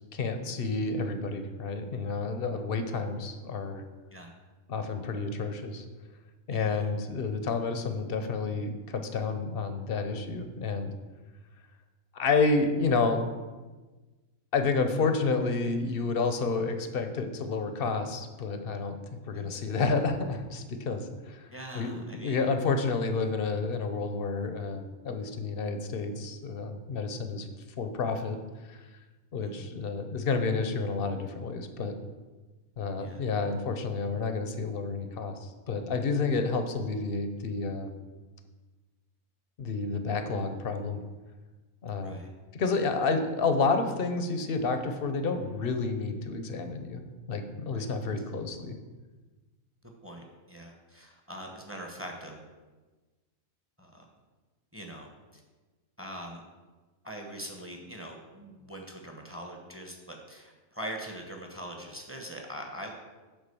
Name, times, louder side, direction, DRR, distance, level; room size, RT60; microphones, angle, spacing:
voice 1, 0.1-3.8 4.7-5.9 6.5-10.9 12.1-13.3 14.5-27.5 27.8-28.9 29.3-31.9 32.8-37.9 39.6-41.0 41.8-42.2 42.5-47.0 47.3-48.7, left 4 dB, 50° left, 7 dB, 0.9 m, -30 dB
voice 2, 6.5-6.9 19.3-19.5 21.5-22.4 29.4-29.7 33.0-33.2 42.0-42.3 47.7-47.9 50.0-52.4 53.8-54.0 54.7-55.4 56.0-56.4 57.0-62.9, equal, 10° right, 2 dB, 1.0 m, -42 dB
9.3 x 3.8 x 6.8 m, 1.3 s
omnidirectional pair, 1.5 m